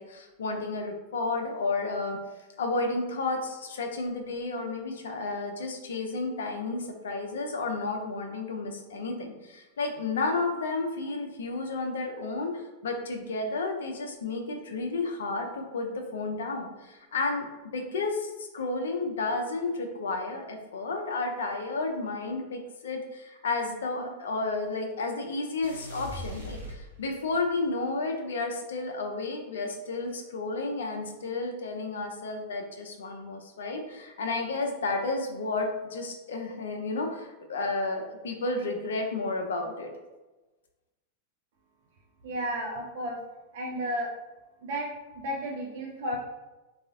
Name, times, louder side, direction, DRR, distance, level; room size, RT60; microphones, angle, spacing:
voice 1, 0.0-2.2 2.6-17.5 17.7-39.9, left 3 dB, 65° left, 3 dB, 0.5 m, -32 dB
sound 1, 25.6-27.4, equal, 85° right, 0.9 m, -40 dB
voice 2, 42.2-43.2 43.5-44.1 44.6-46.2, equal, 55° right, -1 dB, 0.5 m, -33 dB
3.7 x 2.3 x 2.6 m, 1.1 s
figure-of-eight pair, 90°, 0 cm